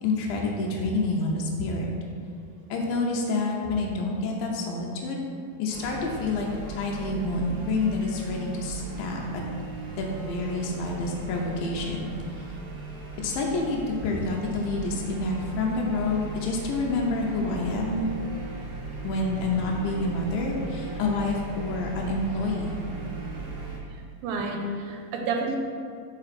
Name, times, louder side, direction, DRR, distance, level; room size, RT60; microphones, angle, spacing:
voice 1, 0.0-1.9 2.7-5.2 5.6-9.4 10.0-12.1 13.2-18.1 19.0-22.8, left 3 dB, 85° left, -1 dB, 2.4 m, -28 dB
sound 1, 5.7-23.8, right 4 dB, 70° right, 1.7 m, -37 dB
voice 2, 23.9-25.6, right 3 dB, 90° right, 2 dB, 2.5 m, -31 dB
5.3 x 4.9 x 4.1 m, 2.3 s
omnidirectional pair, 4.0 m